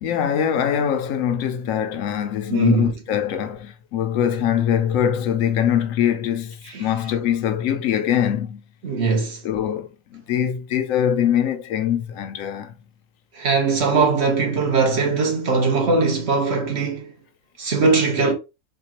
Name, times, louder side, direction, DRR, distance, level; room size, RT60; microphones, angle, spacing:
voice 1, 0.0-8.6 9.4-12.7, left 9 dB, 80° left, 1.0 m, -23 dB
voice 2, 2.5-2.9 6.7-6.9 8.8-9.4 13.3-17.1 17.6-18.3, right 4 dB, 55° right, 1.1 m, -20 dB
4.3 x 2.3 x 2.8 m
omnidirectional pair, 1.4 m